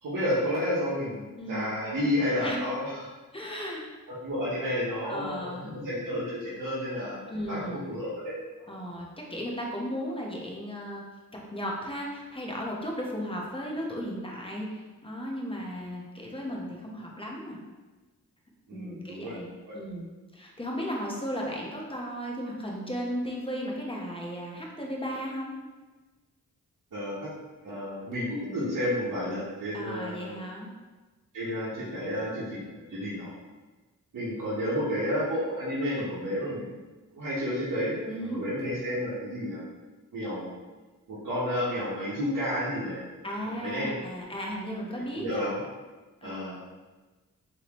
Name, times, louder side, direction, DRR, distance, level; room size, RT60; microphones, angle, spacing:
voice 1, 0.0-3.0 4.2-8.7 18.7-19.4 19.7-19.8 26.9-27.3 27.6-30.4 31.3-33.3 34.1-36.7 37.1-38.0 38.3-39.6 40.1-40.5 41.1-43.0 43.4-43.9 45.1-45.6 46.2-46.6, equal, 70° right, -10 dB, 1.0 m, -31 dB
voice 2, 1.4-1.8 2.4-2.6 3.3-3.8 5.0-5.7 7.3-7.8 8.7-11.0 11.5-17.6 18.7-20.1 20.3-25.6 29.7-30.7 38.1-38.4 43.2-45.4 46.2-46.6, equal, 15° left, -2 dB, 0.8 m, -35 dB
3.5 x 2.9 x 3.0 m, 1.3 s
cardioid pair, 60°, 33 cm